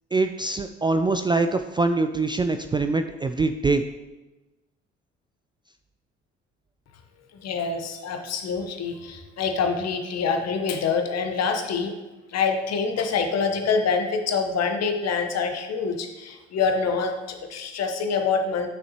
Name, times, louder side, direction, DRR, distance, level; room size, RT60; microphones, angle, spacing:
voice 1, 0.1-3.8, right 3 dB, 15° right, 8 dB, 0.3 m, -23 dB
voice 2, 7.4-11.9 12.3-18.7, left 5 dB, 50° left, 5 dB, 1.1 m, -26 dB
9.3 x 6.3 x 2.9 m, 1.1 s
figure-of-eight pair, 45°, 33 cm